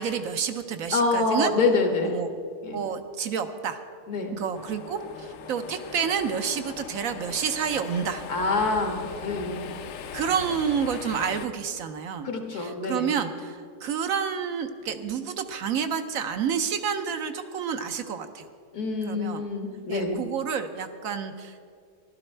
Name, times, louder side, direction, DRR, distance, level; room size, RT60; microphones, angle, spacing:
voice 1, 0.0-1.5 2.0-2.3 2.7-3.8 4.3-8.2 10.1-18.5 19.0-19.4 19.9-21.7, right 7 dB, 70° right, 8 dB, 1.1 m, -29 dB
voice 2, 0.9-2.2 2.6-2.8 4.1-4.4 8.3-9.7 12.2-13.2 18.7-20.2, left 3 dB, 80° left, 3 dB, 1.9 m, -26 dB
sound 1, 4.5-11.5, left 7 dB, 65° left, 0.9 m, -40 dB
15.0 x 12.0 x 4.4 m, 2.2 s
omnidirectional pair, 1.6 m